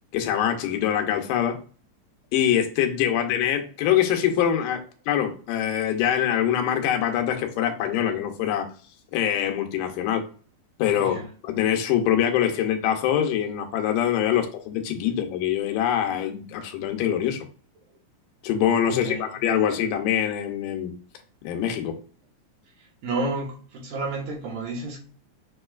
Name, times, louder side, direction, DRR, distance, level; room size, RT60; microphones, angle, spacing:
voice 1, 0.1-1.6 2.3-8.7 9.1-10.2 10.8-17.4 18.4-20.9 21.4-21.9, left 10 dB, 85° left, 2.3 m, -24 dB
voice 2, 18.9-19.3 23.0-25.0, right 2 dB, 80° right, 2.8 m, -30 dB
6.5 x 3.1 x 2.3 m
omnidirectional pair, 3.7 m